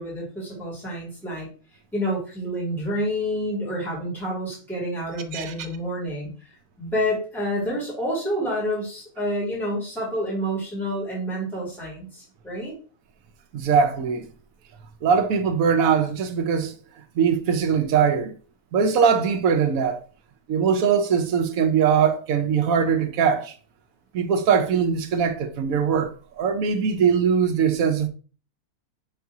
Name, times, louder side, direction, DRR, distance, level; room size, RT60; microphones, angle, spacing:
voice 1, 0.0-1.5 1.9-6.3 6.8-12.7, equal, ahead, 2.3 m, -28 dB
voice 2, 13.5-14.3 15.0-16.7 17.2-18.3 18.7-20.0 20.5-23.5 24.1-28.1, right 6 dB, 70° right, 1.1 m, -21 dB
5.5 x 3.5 x 2.7 m
omnidirectional pair, 1.5 m